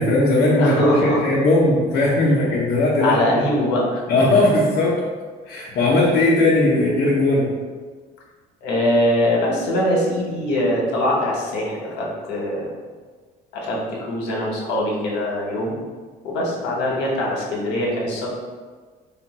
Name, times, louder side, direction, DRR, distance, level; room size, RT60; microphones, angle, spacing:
voice 1, 0.0-0.7 1.0-3.5 4.1-5.0 5.5-7.5, left 2 dB, 65° left, -7 dB, 0.9 m, -18 dB
voice 2, 0.6-1.2 3.0-4.0 8.6-12.6 13.5-13.8 14.1-15.8 16.2-18.3, left 1 dB, 85° left, -3 dB, 1.1 m, -22 dB
3.7 x 2.2 x 4.1 m, 1.5 s
cardioid pair, 110°, 17 cm